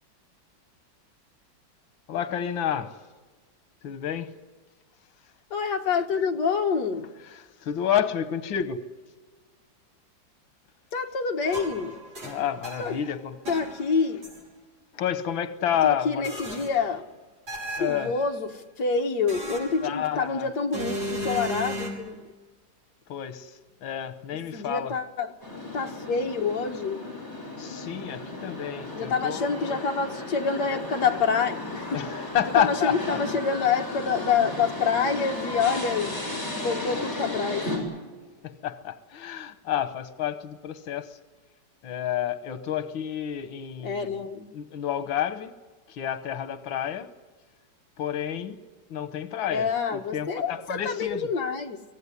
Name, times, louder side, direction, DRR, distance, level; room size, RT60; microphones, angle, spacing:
voice 1, 2.1-3.0 3.8-4.3 7.3-8.8 12.2-13.4 14.9-16.3 17.8-18.1 19.8-20.5 23.1-24.9 27.6-29.8 31.9-33.2 38.4-41.2 41.8-44.1 44.5-45.5 45.9-47.1 48.0-48.6 48.9-51.3, left 10 dB, 90° left, 1.8 m, -30 dB
voice 2, 5.5-7.1 10.9-12.0 12.8-13.0 13.5-14.2 15.8-17.1 17.8-22.2 24.5-25.3 25.7-27.0 28.9-32.0 32.6-36.2 36.5-37.7 43.8-44.5 49.5-51.8, left 5 dB, 60° left, 1.9 m, -27 dB
sound 1, 11.4-13.1 13.5-14.4 16.2-16.9 17.5-18.3 19.3-20.2 20.7-21.9, equal, 85° right, 7.6 m, -35 dB
sound 2, 25.4-37.8, left 2 dB, 35° left, 7.6 m, -35 dB
24.5 x 17.0 x 9.8 m
omnidirectional pair, 2.1 m